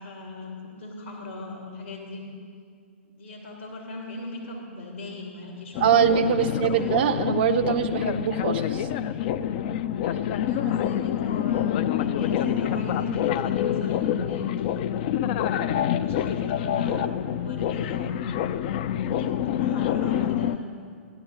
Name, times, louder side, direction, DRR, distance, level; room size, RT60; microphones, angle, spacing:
voice 1, 0.0-2.2 3.0-6.0 6.3-7.1 10.2-14.5 14.8-15.1 16.0-17.0 17.4-18.3 19.0-20.5, left 2 dB, 75° left, -1 dB, 3.0 m, -39 dB
sound 1, 5.7-20.6, left 10 dB, 45° left, 0.5 m, -27 dB
voice 2, 5.8-8.9, right 7 dB, 50° right, 6 dB, 0.7 m, -23 dB
16.0 x 11.0 x 6.6 m, 2.2 s
figure-of-eight pair, 110°, 7 cm